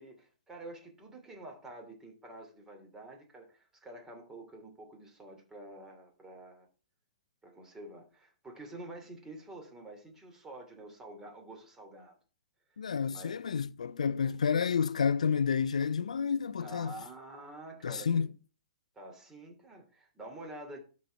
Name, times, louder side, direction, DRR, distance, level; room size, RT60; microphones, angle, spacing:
voice 1, 0.0-6.7 7.4-12.2 13.1-13.5 16.6-18.3 18.9-20.8, right 2 dB, 15° right, 2.9 m, -48 dB
voice 2, 12.8-16.9 17.8-18.3, left 6 dB, 80° left, 0.4 m, -30 dB
12.5 x 4.3 x 4.5 m
hypercardioid pair, 115°, 4 cm